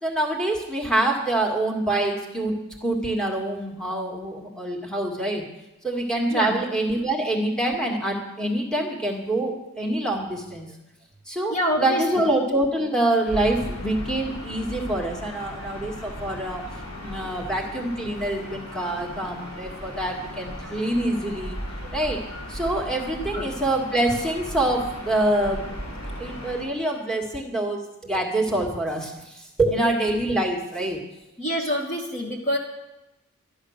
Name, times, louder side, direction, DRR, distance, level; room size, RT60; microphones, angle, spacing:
voice 1, 0.0-5.5 5.8-10.7 11.3-21.6 21.9-22.2 22.5-25.8 26.2-31.0, right 1 dB, 5° left, -1 dB, 2.0 m, -26 dB
voice 2, 6.3-6.6 11.5-12.3 23.1-23.5 31.4-32.6, equal, 35° left, 0 dB, 1.6 m, -27 dB
Gull seagull / Ocean, 13.2-26.6, equal, 75° left, 4.6 m, -37 dB
12.5 x 10.5 x 6.5 m, 0.96 s
head